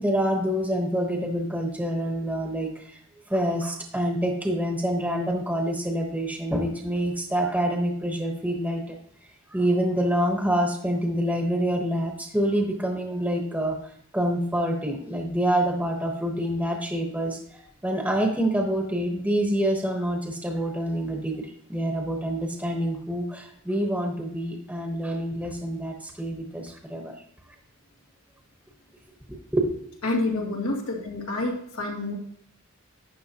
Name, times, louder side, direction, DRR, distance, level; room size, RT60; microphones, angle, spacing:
voice 1, 0.0-3.0 3.3-9.0 9.5-13.7 14.1-21.4 21.7-27.1 29.3-29.7, right 1 dB, 5° right, 2 dB, 1.1 m, -26 dB
voice 2, 30.0-32.1, left 2 dB, 85° left, -1 dB, 2.4 m, -28 dB
12.0 x 8.5 x 2.9 m, 0.67 s
head